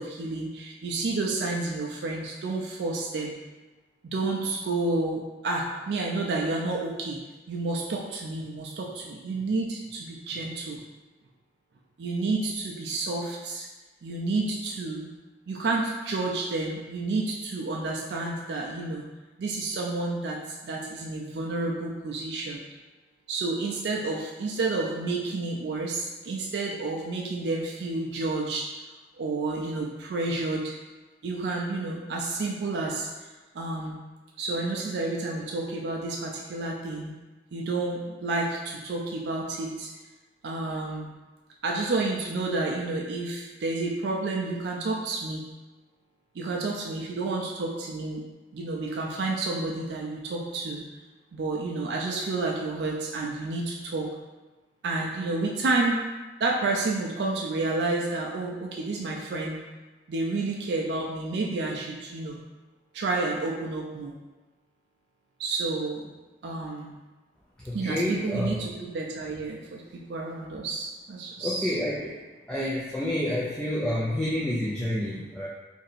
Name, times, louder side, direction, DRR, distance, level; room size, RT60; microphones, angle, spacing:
voice 1, 0.0-3.4 4.0-7.2 7.5-10.8 12.0-13.7 14.0-15.1 15.5-19.0 19.4-22.6 23.3-28.6 29.2-30.7 31.2-34.0 34.4-37.1 37.5-39.9 40.4-41.1 41.6-45.4 46.3-48.2 48.5-50.8 51.3-54.1 54.8-56.0 56.4-59.6 60.1-62.4 62.9-64.1 65.4-66.1 66.4-66.9 67.7-71.8, right 3 dB, 75° right, -2 dB, 0.4 m, -30 dB
voice 2, 67.6-68.6 71.4-72.2 72.5-75.5, left 1 dB, 5° left, -7 dB, 0.3 m, -29 dB
2.7 x 2.6 x 4.0 m, 1.2 s
head